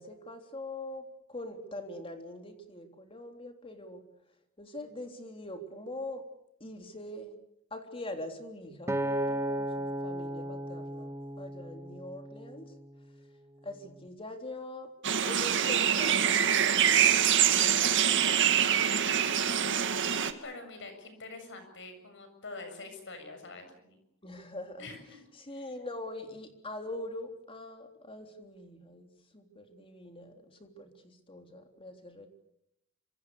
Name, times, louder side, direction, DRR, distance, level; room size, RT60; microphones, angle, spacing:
voice 1, 0.0-4.0 4.6-6.2 6.6-7.3 7.7-12.7 13.6-14.9 15.2-17.1 24.2-24.9 25.4-32.3, left 1 dB, 25° left, 5 dB, 3.5 m, -43 dB
Acoustic guitar, 8.9-13.2 13.8-14.1, right 1 dB, 15° right, 1.8 m, -35 dB
sound 1, 15.0-20.3, right 9 dB, 60° right, 2.0 m, -25 dB
voice 2, 19.1-19.8 20.2-24.0 24.8-25.2 25.5-25.7, left 3 dB, 60° left, 7 dB, 7.3 m, -46 dB
26.5 x 26.0 x 6.8 m, 0.77 s
head